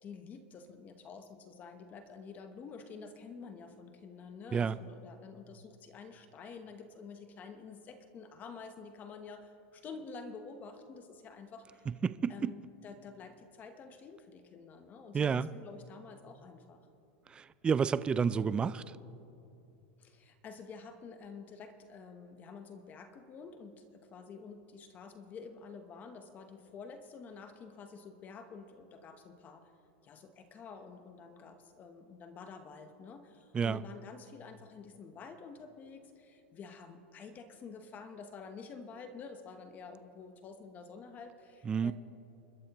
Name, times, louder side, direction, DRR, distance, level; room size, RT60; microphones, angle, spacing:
voice 1, 0.0-11.9 12.3-16.9 20.0-29.7 30.0-41.9, left 5 dB, 25° left, 8 dB, 0.9 m, -49 dB
voice 2, 12.0-12.5 15.1-15.5 17.3-18.8 33.5-33.8 41.7-41.9, right 6 dB, 15° right, 16 dB, 0.3 m, -30 dB
29.0 x 12.5 x 3.0 m, 2.8 s
supercardioid pair, 140°, 6 cm